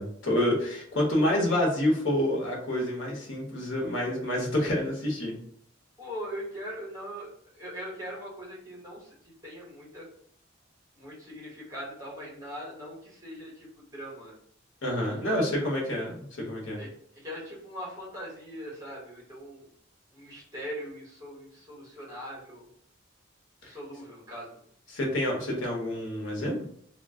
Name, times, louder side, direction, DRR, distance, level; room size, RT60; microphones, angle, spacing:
voice 1, 0.0-5.4 14.8-16.8 23.6-23.7 24.9-26.6, left 1 dB, 80° left, -2 dB, 1.0 m, -28 dB
voice 2, 6.0-9.1 9.4-10.1 11.0-13.7 13.9-14.4 15.0-15.4 15.7-15.8 16.8-16.9 17.2-19.7 20.1-22.7 23.6-24.6, equal, 20° right, -5 dB, 1.1 m, -41 dB
2.4 x 2.3 x 3.5 m, 0.65 s
head